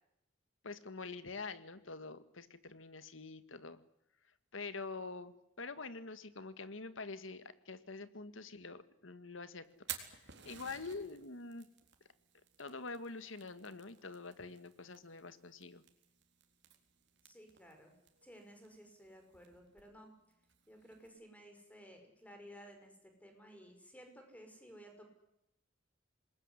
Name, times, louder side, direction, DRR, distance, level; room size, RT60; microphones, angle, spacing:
voice 1, 0.6-3.8 4.5-9.7 10.0-11.7 12.6-15.8, left 3 dB, 80° left, 12 dB, 1.8 m, -46 dB
Fire, 9.6-21.1, right 10 dB, 65° right, 3.9 m, -54 dB
voice 2, 17.2-17.9 18.2-20.1 20.7-25.1, equal, 10° left, 5 dB, 5.8 m, -56 dB
26.0 x 20.5 x 9.9 m, 0.85 s
head